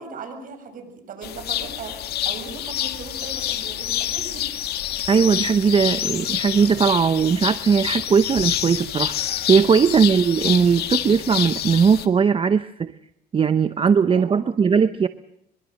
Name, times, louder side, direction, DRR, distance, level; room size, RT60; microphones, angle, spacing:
voice 1, 0.0-4.5 9.6-9.9 14.1-14.6, right 4 dB, 55° right, 6 dB, 7.0 m, -38 dB
sound 1, 1.2-12.1, left 12 dB, 70° left, 1.9 m, -27 dB
voice 2, 5.1-12.9 13.3-15.1, right 6 dB, 30° right, 12 dB, 0.8 m, -19 dB
24.0 x 23.0 x 6.5 m, 0.75 s
cardioid pair, 110°, 17 cm